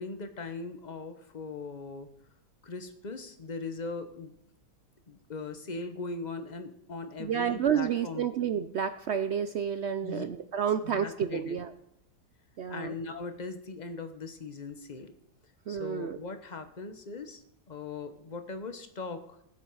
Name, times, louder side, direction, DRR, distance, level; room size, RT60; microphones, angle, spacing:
voice 1, 0.0-2.1 2.6-4.3 5.1-8.3 10.0-10.3 10.8-11.6 12.7-15.1 15.7-17.4 17.7-19.4, left 4 dB, 30° left, 8 dB, 1.0 m, -39 dB
voice 2, 7.2-11.7 12.6-12.9 15.7-16.2, right 8 dB, 80° right, 10 dB, 0.6 m, -30 dB
19.5 x 7.5 x 4.7 m, 0.77 s
omnidirectional pair, 1.8 m